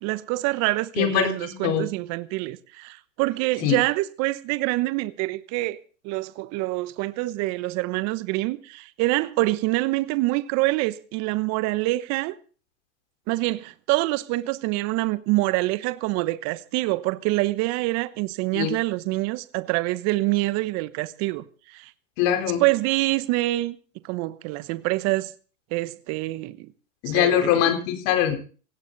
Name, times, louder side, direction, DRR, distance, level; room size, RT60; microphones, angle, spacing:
voice 1, 0.0-5.8 6.0-12.3 13.3-21.4 21.7-21.9 22.6-23.8 24.0-25.3 25.7-26.7 27.1-27.6, right 20 dB, 45° right, 1.1 m, -26 dB
voice 2, 1.0-1.9 3.6-3.7 18.5-18.7 22.2-22.6 27.0-28.4, left 10 dB, 50° left, 4.3 m, -22 dB
17.5 x 16.5 x 4.1 m
hypercardioid pair, 115°, 38 cm